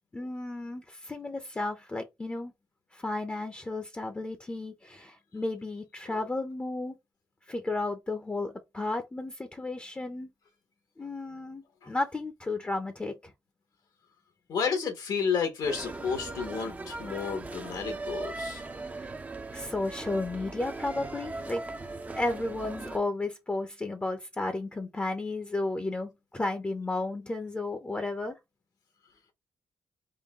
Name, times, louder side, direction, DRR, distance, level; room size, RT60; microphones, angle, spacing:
voice 1, 0.1-2.5 2.9-7.0 7.5-10.3 11.0-13.3 19.0-19.1 19.5-21.6 22.1-28.3, left 2 dB, 20° left, 0.6 m, -33 dB
voice 2, 14.5-18.6, left 6 dB, 75° left, 1.3 m, -31 dB
sound 1, 15.6-23.0, right 3 dB, 25° right, 0.5 m, -39 dB
3.7 x 2.2 x 3.5 m
cardioid pair, 110°, 7 cm